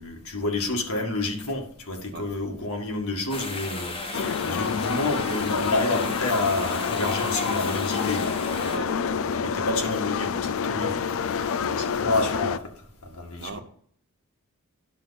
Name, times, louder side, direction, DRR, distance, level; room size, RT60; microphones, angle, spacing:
voice 1, 0.0-12.6 13.0-13.6, left 2 dB, 75° left, 1.8 m, -29 dB
voice 2, 2.1-2.3 8.7-8.9 11.9-12.0 13.4-13.6, right 4 dB, 50° right, 0.7 m, -38 dB
sound 1, 3.3-8.8, left 2 dB, 25° left, 1.2 m, -35 dB
sound 2, 4.1-12.6, left 6 dB, 60° left, 0.4 m, -28 dB
10.5 x 6.5 x 4.1 m
head